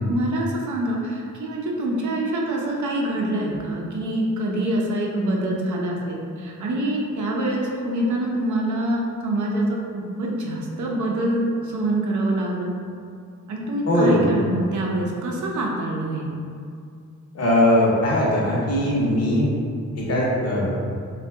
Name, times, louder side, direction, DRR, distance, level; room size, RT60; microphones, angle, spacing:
voice 1, 0.1-12.7 13.5-16.3, right 1 dB, 65° right, -2 dB, 0.6 m, -25 dB
voice 2, 13.9-14.3 17.3-19.5 20.0-20.7, left 1 dB, 50° left, -5 dB, 0.8 m, -20 dB
2.6 x 2.3 x 3.4 m, 2.3 s
wide cardioid pair, 115°, 32 cm